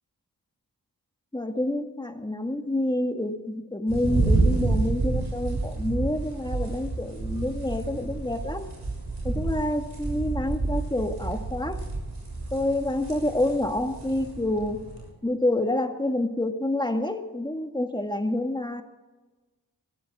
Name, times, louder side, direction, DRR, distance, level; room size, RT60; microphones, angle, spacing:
voice 1, 1.3-8.7 9.2-11.8 12.5-14.9 15.2-18.8, left 1 dB, 10° left, 5 dB, 1.7 m, -28 dB
sound 1, 3.9-15.1, right 3 dB, 80° right, 6.7 m, -29 dB
23.5 x 14.5 x 3.7 m, 1.2 s
wide cardioid pair, 60°, 40 cm